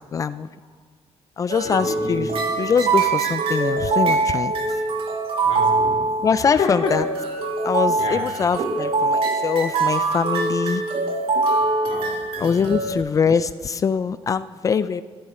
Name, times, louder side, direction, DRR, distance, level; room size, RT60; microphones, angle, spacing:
voice 1, 0.1-0.5 1.4-2.3 2.6-4.5 6.2-7.0 7.6-10.8 12.4-15.0, left 6 dB, 30° left, 14 dB, 0.4 m, -23 dB
sound 1, 1.5-12.9, right 3 dB, 60° right, 1.9 m, -23 dB
voice 2, 1.6-2.4 2.6-2.7 5.4-6.1 6.3-7.0 7.9-8.3 9.3-9.4 11.8-12.8, left 5 dB, 60° left, -1 dB, 3.5 m, -30 dB
22.5 x 15.0 x 4.3 m, 1.5 s
cardioid pair, 160°, 11 cm